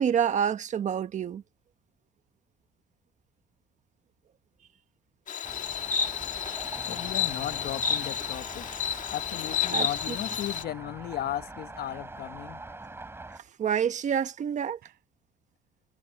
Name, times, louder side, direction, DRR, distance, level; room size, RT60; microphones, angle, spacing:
voice 1, 0.0-1.4 9.7-10.2 13.6-14.8, right 8 dB, 45° right, 1.2 m, -27 dB
Insect, 5.3-10.6, left 7 dB, 50° left, 1.8 m, -31 dB
sound 1, 5.4-13.4, right 2 dB, 15° right, 4.1 m, -43 dB
voice 2, 6.8-8.7 9.1-12.6, left 12 dB, 65° left, 1.1 m, -36 dB
sound 2, 9.8-13.6 14.1-14.2 14.7-15.0, right 12 dB, 65° right, 7.1 m, -62 dB
cardioid pair, 110°, 17 cm